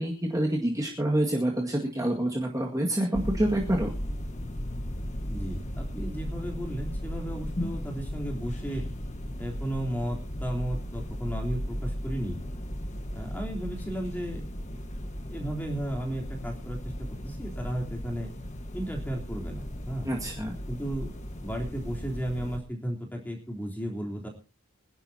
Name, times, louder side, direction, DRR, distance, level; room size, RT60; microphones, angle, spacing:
voice 1, 0.0-3.9 20.1-20.6, right 1 dB, 15° right, -1 dB, 1.9 m, -27 dB
sound 1, 3.1-22.6, equal, 30° left, 1.5 m, -36 dB
voice 2, 5.3-8.8 9.4-12.4 13.1-14.4 15.3-16.8 17.2-18.3 18.7-20.1 20.7-21.1 21.4-24.3, right 1 dB, 10° left, 0 dB, 3.5 m, -34 dB
25.0 x 11.0 x 2.9 m, 0.30 s
head